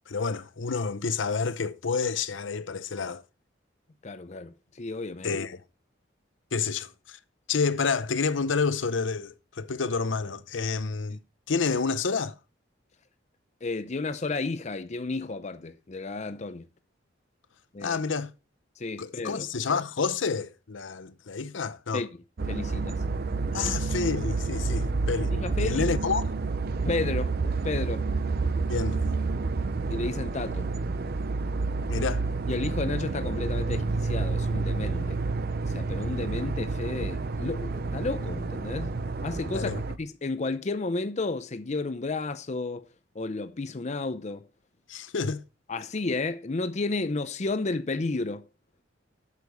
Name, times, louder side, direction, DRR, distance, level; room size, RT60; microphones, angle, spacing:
voice 1, 0.1-3.2 5.2-5.6 6.5-7.2 7.5-11.2 11.5-12.4 17.8-18.3 19.0-22.0 23.5-25.3 25.6-26.4 28.7-29.0 31.9-32.2 39.5-39.8 44.9-45.4, left 5 dB, 80° left, 0.7 m, -29 dB
voice 2, 4.0-5.4 11.1-11.2 13.6-16.7 17.7-18.0 18.8-19.4 21.9-22.1 22.5-23.0 23.5-23.7 25.3-25.8 26.8-27.4 27.6-28.1 29.9-30.7 32.5-35.2 35.7-38.9 39.2-42.9 43.1-44.4 45.7-48.5, left 3 dB, 35° left, 0.6 m, -32 dB
sound 1, 22.4-40.0, right 3 dB, 50° right, 0.6 m, -29 dB
8.3 x 6.7 x 5.2 m
head